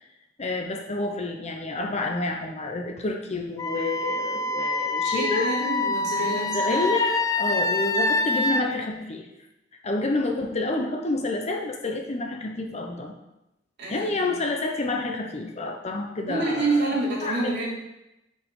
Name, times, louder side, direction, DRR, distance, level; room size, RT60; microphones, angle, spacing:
voice 1, 0.4-5.5 6.2-9.3 9.8-13.2 13.9-17.7, left 2 dB, 35° left, 2 dB, 0.9 m, -29 dB
Wind instrument woodwind instrument, 3.6-8.6, left 2 dB, 20° left, 0.4 m, -26 dB
voice 2, 5.0-6.9 13.8-14.1 16.3-17.7, right 2 dB, 65° right, -6 dB, 3.0 m, -27 dB
7.4 x 6.9 x 3.8 m, 0.92 s
head